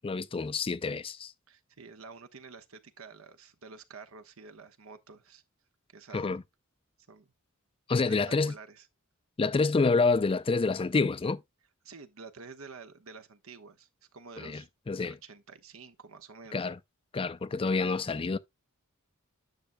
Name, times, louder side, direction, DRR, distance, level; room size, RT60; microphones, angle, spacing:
voice 1, 0.0-1.3 6.1-6.4 7.9-8.5 9.4-11.4 14.4-14.6 14.9-15.1 16.5-16.8 17.1-18.4, left 4 dB, 25° left, 0.4 m, -27 dB
voice 2, 1.5-5.4 5.9-6.3 7.1-7.3 7.9-8.9 11.8-14.7 15.0-16.7, right 4 dB, 70° right, 1.1 m, -49 dB
10.0 x 6.6 x 2.2 m
head